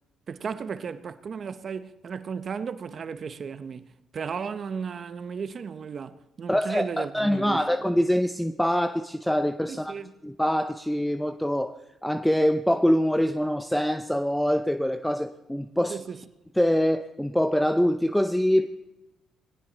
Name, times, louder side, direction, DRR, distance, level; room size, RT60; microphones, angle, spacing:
voice 1, 0.3-7.7 9.7-10.1 15.9-16.2, right 6 dB, 50° right, 0.9 m, -35 dB
voice 2, 6.5-9.9 10.2-11.7 12.0-16.0 16.6-18.7, equal, 5° left, 0.6 m, -24 dB
20.0 x 17.0 x 4.1 m
cardioid pair, 90°, 0 cm